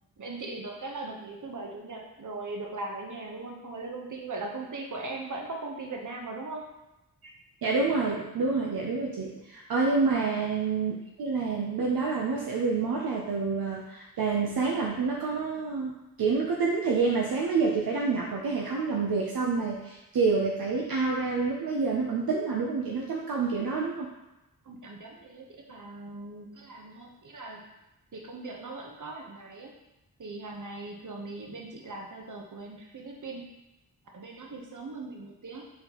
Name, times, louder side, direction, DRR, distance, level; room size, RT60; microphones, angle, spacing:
voice 1, 0.2-6.7 10.2-10.5 24.6-27.7 28.1-29.8 30.2-33.5 34.1-35.6, right 2 dB, 55° right, 0 dB, 0.9 m, -39 dB
voice 2, 7.6-24.1, right 4 dB, 75° right, -2 dB, 0.7 m, -28 dB
4.3 x 3.9 x 2.9 m, 0.98 s
cardioid pair, 45°, 37 cm